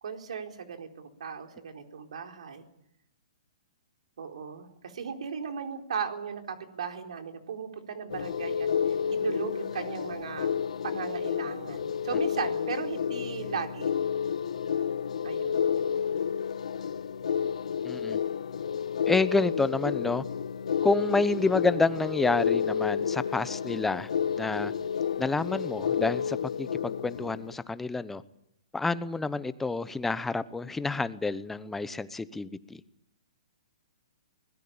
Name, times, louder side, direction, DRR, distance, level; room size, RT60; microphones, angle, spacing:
voice 1, 0.0-2.7 4.2-10.5 10.8-13.9 15.2-15.7, right 6 dB, 75° right, 4 dB, 4.3 m, -37 dB
sound 1, 8.1-27.5, left 7 dB, 80° left, 1.2 m, -30 dB
voice 2, 17.8-18.2 19.1-20.2 20.8-24.1 24.4-24.7 25.2-28.2 28.7-32.8, left 3 dB, 5° left, 15 dB, 0.9 m, -29 dB
24.0 x 20.5 x 8.8 m, 0.77 s
hypercardioid pair, 145°, 4 cm